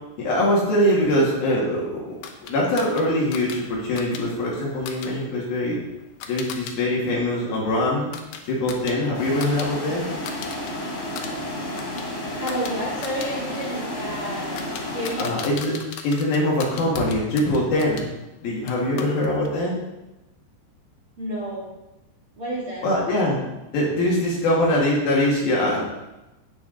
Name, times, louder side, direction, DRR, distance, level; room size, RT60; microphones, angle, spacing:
voice 1, 0.2-2.1 2.5-5.8 6.3-8.1 8.4-10.1 15.2-15.8 16.0-18.1 18.4-19.8 22.8-23.4 23.7-25.9, left 1 dB, 60° left, -4 dB, 3.4 m, -22 dB
sound 1, 2.2-6.8 7.1-9.7 10.0-10.7 11.0-18.1 18.7-19.6, left 6 dB, 80° left, 2.0 m, -39 dB
sound 2, 9.1-15.1, left 1 dB, 40° left, 3.6 m, -31 dB
voice 2, 12.4-15.4 21.2-21.7 22.4-22.8, equal, 35° right, -7 dB, 2.6 m, -30 dB
16.5 x 5.9 x 3.9 m, 0.99 s
omnidirectional pair, 5.3 m